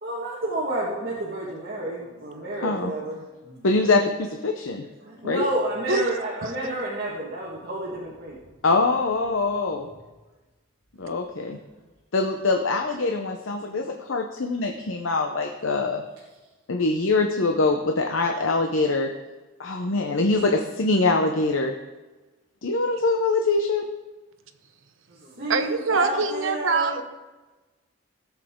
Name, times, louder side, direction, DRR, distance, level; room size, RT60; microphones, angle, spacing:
voice 1, 0.0-3.8 4.8-8.4 13.6-13.9 16.7-16.9 25.1-27.0, right 1 dB, 50° right, -7 dB, 1.8 m, -30 dB
voice 2, 2.6-2.9 3.6-4.8 5.2-5.5 8.6-9.9 11.0-11.6 12.1-16.0 16.7-19.1 19.6-21.7 22.6-23.8, left 3 dB, 80° left, 3 dB, 0.8 m, -23 dB
voice 3, 25.5-27.0, right 4 dB, 75° right, 9 dB, 0.9 m, -24 dB
17.5 x 7.4 x 3.8 m, 1.2 s
head